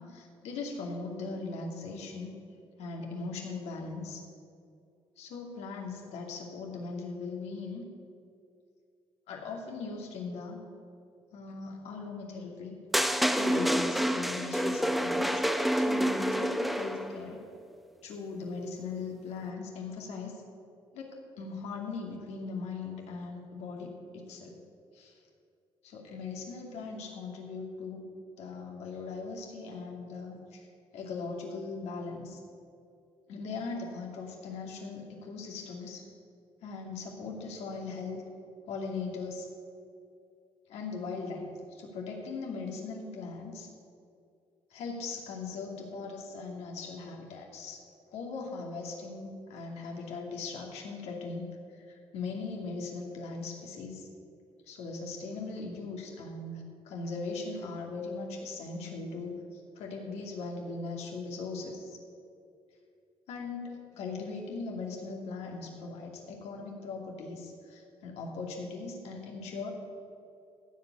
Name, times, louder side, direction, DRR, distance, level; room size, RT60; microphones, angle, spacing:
voice 1, 0.0-2.3 2.8-4.2 5.2-7.8 9.3-10.6 11.3-12.8 13.3-15.4 15.7-17.4 18.0-20.4 20.9-24.5 24.9-25.2 25.8-28.0 28.4-30.7 30.9-32.4 33.3-36.0 36.6-38.2 38.7-39.5 40.7-43.7 44.7-47.8 48.1-51.5 51.7-54.1 54.7-62.0 63.3-69.7, left 4 dB, 80° left, 0 dB, 2.6 m, -39 dB
sound 1, 12.9-17.2, equal, ahead, 0.8 m, -28 dB
15.0 x 5.3 x 9.5 m, 2.4 s
cardioid pair, 85°, 11 cm